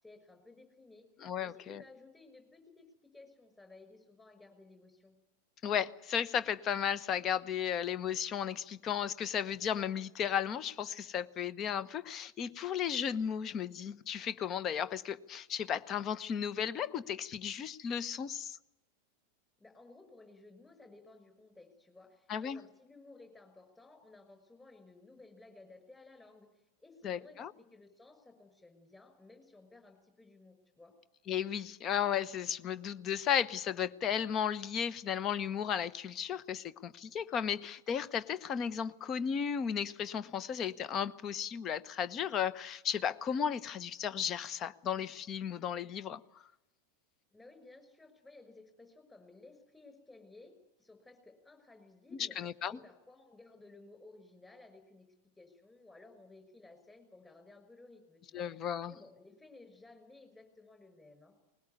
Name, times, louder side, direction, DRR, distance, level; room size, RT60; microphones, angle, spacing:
voice 1, 0.0-1.1 1.4-5.2 19.6-30.9 47.3-50.5 50.8-52.4 52.7-55.1 55.4-61.4, left 2 dB, 10° left, 7 dB, 5.9 m, -57 dB
voice 2, 1.2-1.8 5.6-18.6 22.3-22.6 27.0-27.5 31.3-46.4 52.2-52.8 58.3-58.9, left 8 dB, 30° left, 17 dB, 0.9 m, -34 dB
20.5 x 20.0 x 9.5 m, 0.89 s
figure-of-eight pair, 90°, 0 cm